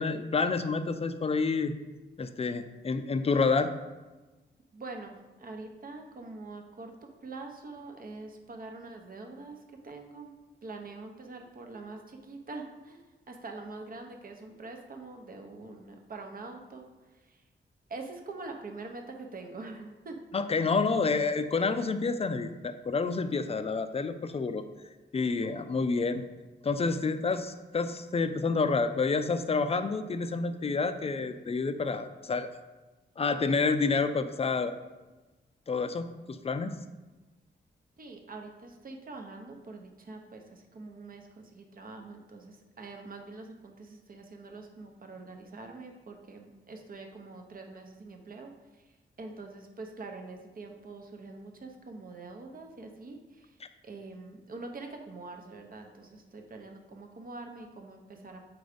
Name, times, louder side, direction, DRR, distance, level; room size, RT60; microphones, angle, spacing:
voice 1, 0.0-1.7 2.2-3.7 20.3-24.6 25.1-26.2 26.6-32.5 33.2-34.7 35.7-36.7, left 4 dB, 30° left, 10 dB, 0.4 m, -29 dB
voice 2, 4.7-9.6 9.8-10.3 10.6-16.9 17.1-17.4 17.9-20.2 38.0-48.8 49.2-53.6 53.8-58.4, right 3 dB, 50° right, 3 dB, 0.8 m, -44 dB
4.8 x 3.9 x 5.0 m, 1.2 s
wide cardioid pair, 105°, 20 cm